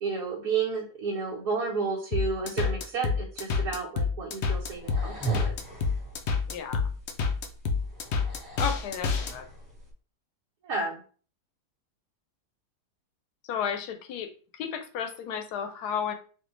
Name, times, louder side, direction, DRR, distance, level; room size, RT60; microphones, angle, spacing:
voice 1, 0.0-5.6 10.6-11.0, right 4 dB, 70° right, -6 dB, 1.4 m, -31 dB
sound 1, 2.1-9.3, left 5 dB, 65° left, 0.7 m, -28 dB
sound 2, 4.5-9.9, right 3 dB, 15° right, 1.2 m, -39 dB
voice 2, 6.5-6.9 8.6-9.5 13.5-14.3 14.6-16.1, left 7 dB, 80° left, 7 dB, 1.2 m, -33 dB
4.3 x 2.8 x 3.1 m, 0.41 s
omnidirectional pair, 1.7 m